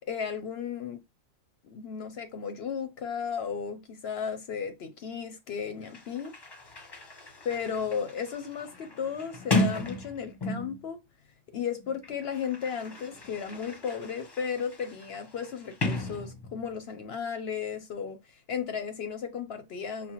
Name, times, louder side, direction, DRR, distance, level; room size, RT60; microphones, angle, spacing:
voice 1, 0.1-1.0 1.6-6.3 7.4-11.0 11.5-20.1, left 7 dB, 60° left, 0.7 m, -34 dB
Sliding door, 5.5-5.6 5.8-10.9 11.8-16.8, left 1 dB, 25° left, 0.6 m, -35 dB
5.7 x 2.2 x 2.9 m
omnidirectional pair, 1.4 m